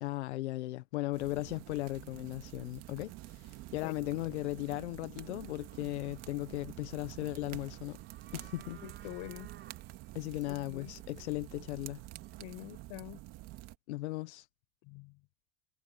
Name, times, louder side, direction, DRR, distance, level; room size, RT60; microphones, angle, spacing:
voice 1, 0.0-8.0 8.3-8.8 10.1-12.0 13.9-14.5, left 19 dB, 90° left, 1.1 m, -37 dB
sound 1, 1.1-13.8, right 17 dB, 50° right, 2.0 m, -48 dB
sound 2, 5.4-12.8, right 10 dB, 35° right, 7.2 m, -60 dB
voice 2, 8.8-9.5 10.5-10.9 12.4-13.2 14.8-15.2, left 26 dB, 60° left, 6.1 m, -46 dB
supercardioid pair, 120°, 33 cm